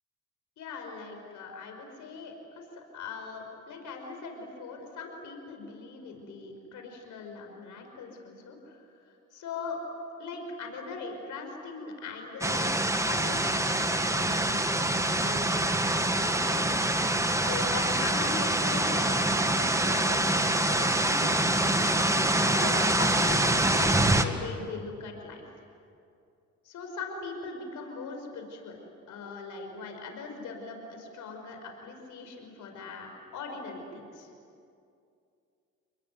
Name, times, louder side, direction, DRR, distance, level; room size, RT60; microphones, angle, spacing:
voice 1, 0.6-9.8 10.2-16.7 17.4-21.8 22.3-25.4 26.6-28.8 29.1-34.3, left 4 dB, 80° left, 4 dB, 5.5 m, -40 dB
sound 1, 12.4-24.3, right 1 dB, 10° right, 1.8 m, -25 dB
30.0 x 20.5 x 9.6 m, 2.5 s
cardioid pair, 90°, 30 cm